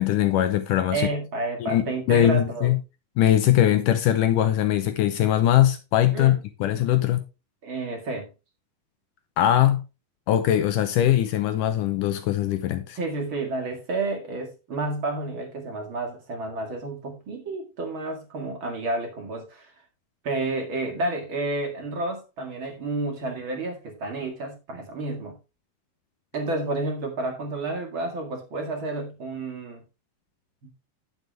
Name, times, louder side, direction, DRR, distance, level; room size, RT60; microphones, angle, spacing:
voice 1, 0.0-1.1 1.6-2.8 3.2-7.2 9.4-9.9 10.3-13.0, left 12 dB, 75° left, 2.0 m, -21 dB
voice 2, 0.9-2.7 6.1-6.4 7.6-8.3 12.9-19.7 20.2-25.4 26.3-29.8 30.6-30.7, right 2 dB, 40° right, 2.2 m, -30 dB
9.6 x 8.0 x 3.3 m
omnidirectional pair, 4.4 m